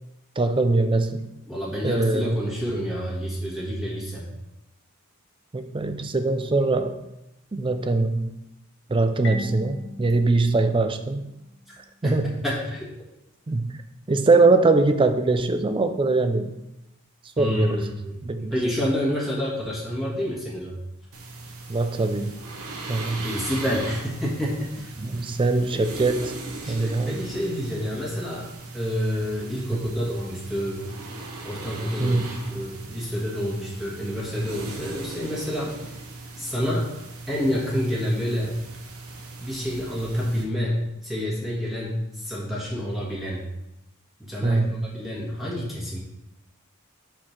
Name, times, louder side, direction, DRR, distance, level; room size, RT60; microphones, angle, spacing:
voice 1, 0.4-1.3 1.8-2.4 5.5-7.0 7.5-8.4 8.9-11.2 12.0-12.4 13.5-13.8 14.1-16.5 17.4-17.8 18.2-18.5 21.7-22.3 22.9-23.3 25.0-26.4 26.7-27.2 32.0-32.3 44.4-45.0, right 3 dB, 25° right, 9 dB, 0.4 m, -22 dB
voice 2, 1.4-4.3 11.7-11.8 12.0-12.9 17.4-18.2 18.5-20.8 23.2-24.9 25.7-25.9 26.6-28.5 28.7-30.9 31.4-32.2 32.5-35.7 36.4-36.9 37.3-38.6 39.4-43.4 44.2-46.0, equal, ahead, -7 dB, 1.5 m, -28 dB
Marimba xylophone, 9.2-11.9, left 1 dB, 60° left, 1.0 m, -40 dB
sound 1, 21.1-40.4, right 3 dB, 80° right, 1.0 m, -39 dB
4.8 x 4.4 x 5.8 m, 0.89 s
head